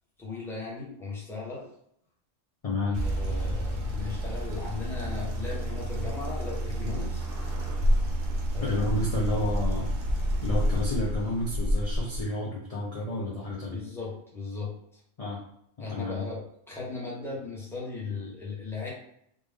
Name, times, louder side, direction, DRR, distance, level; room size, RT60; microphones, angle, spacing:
voice 1, 0.2-1.7 3.0-7.3 8.5-8.8 13.7-15.0 15.8-18.9, left 4 dB, ahead, -6 dB, 0.9 m, -37 dB
voice 2, 2.6-3.0 8.6-9.9 10.4-13.8 15.2-15.4 15.9-16.3, left 1 dB, 40° left, -4 dB, 0.6 m, -30 dB
sound 1, 2.9-12.2, equal, 50° right, 0.9 m, -29 dB
3.5 x 2.4 x 3.5 m, 0.73 s
omnidirectional pair, 1.3 m